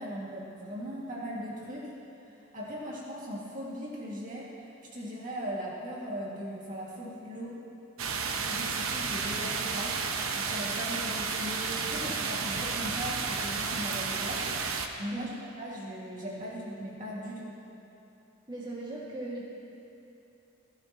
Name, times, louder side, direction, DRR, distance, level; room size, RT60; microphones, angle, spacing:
voice 1, 0.0-1.9 2.3-7.6 8.5-10.0 10.3-14.5 15.0-17.5, equal, 40° right, -5 dB, 2.2 m, -38 dB
sound 1, 8.0-14.9, right 5 dB, 70° right, 0.9 m, -32 dB
voice 2, 18.5-19.5, right 2 dB, 20° right, -6 dB, 2.1 m, -38 dB
16.0 x 16.0 x 3.0 m, 3.0 s
head